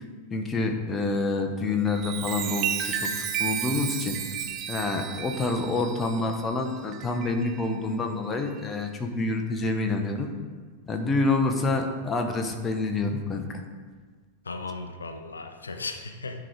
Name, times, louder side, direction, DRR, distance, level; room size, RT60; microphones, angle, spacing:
voice 1, 0.3-4.2 4.7-10.3 10.9-13.6, left 3 dB, 20° left, 3 dB, 0.9 m, -27 dB
Chime, 1.8-7.8 8.3-8.6, right 9 dB, 35° right, 0.6 m, -33 dB
voice 2, 14.4-16.4, left 3 dB, 75° left, 6 dB, 0.6 m, -36 dB
9.9 x 4.9 x 4.6 m, 1.5 s
figure-of-eight pair, 90°, 0 cm